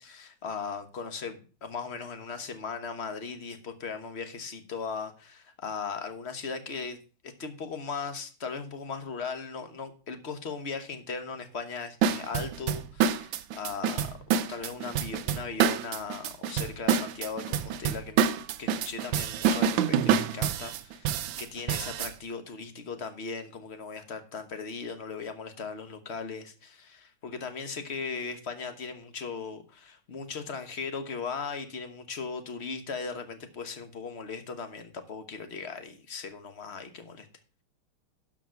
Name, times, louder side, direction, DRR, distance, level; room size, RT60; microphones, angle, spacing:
voice 1, 0.0-7.0 7.2-14.2 14.5-21.1 21.4-37.3, left 5 dB, 40° left, 8 dB, 1.1 m, -38 dB
sound 1, 12.0-22.1, right 8 dB, 70° right, 1.3 m, -27 dB
12.0 x 5.0 x 5.7 m, 0.37 s
omnidirectional pair, 2.3 m